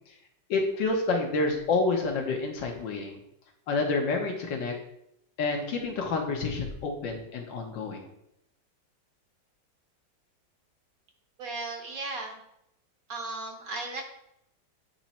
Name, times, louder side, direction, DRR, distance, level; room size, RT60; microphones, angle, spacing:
voice 1, 0.5-3.2 3.7-4.7 5.4-8.1, left 3 dB, 80° left, 2 dB, 1.8 m, -28 dB
voice 2, 11.4-12.4 13.1-14.0, right 3 dB, 55° right, 2 dB, 1.4 m, -36 dB
8.4 x 3.1 x 4.3 m, 0.79 s
omnidirectional pair, 2.0 m